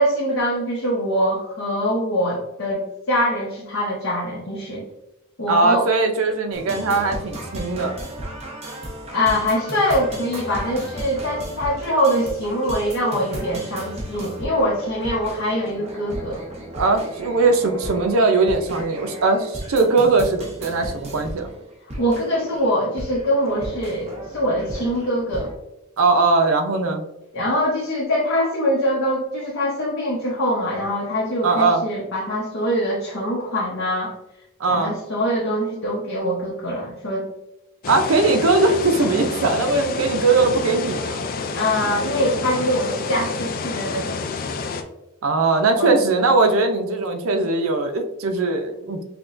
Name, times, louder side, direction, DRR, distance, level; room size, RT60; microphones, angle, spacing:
voice 1, 0.0-4.8 5.4-5.8 9.1-16.4 22.0-25.5 27.3-34.1 34.7-37.3 41.5-44.2 45.8-46.0, equal, 70° left, -5 dB, 0.8 m, -23 dB
voice 2, 5.5-8.0 16.7-21.5 26.0-27.0 31.4-31.8 34.6-34.9 37.9-41.2 45.2-49.0, right 3 dB, 75° right, 5 dB, 0.5 m, -20 dB
sound 1, 6.5-25.5, equal, 30° right, 0.9 m, -35 dB
sound 2, 37.8-44.8, left 4 dB, 45° left, 0.3 m, -29 dB
5.7 x 2.2 x 2.5 m, 0.91 s
head